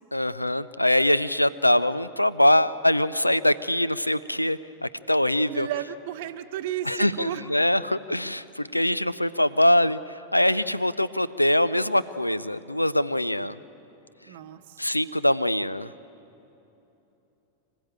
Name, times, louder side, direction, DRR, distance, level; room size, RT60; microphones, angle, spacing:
voice 1, 0.1-5.7 6.8-13.6 14.8-15.9, left 1 dB, 85° left, 17 dB, 0.5 m, -23 dB
voice 2, 5.5-7.4 14.3-14.8, right 12 dB, 50° right, 6 dB, 0.9 m, -33 dB
26.0 x 16.0 x 8.9 m, 3.0 s
figure-of-eight pair, 90°, 0 cm